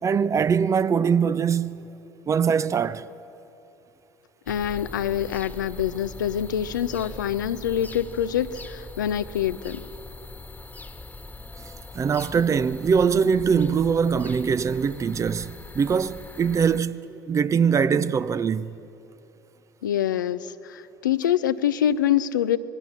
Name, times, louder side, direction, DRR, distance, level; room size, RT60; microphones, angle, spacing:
voice 1, 0.0-1.9 2.3-3.1 11.9-18.8, right 6 dB, 30° right, 0.7 m, -22 dB
voice 2, 4.5-9.8 19.8-22.6, left 10 dB, 80° left, 0.6 m, -25 dB
sound 1, 4.5-16.8, left 2 dB, 15° left, 1.5 m, -41 dB
26.5 x 20.5 x 7.3 m
figure-of-eight pair, 65°, 10 cm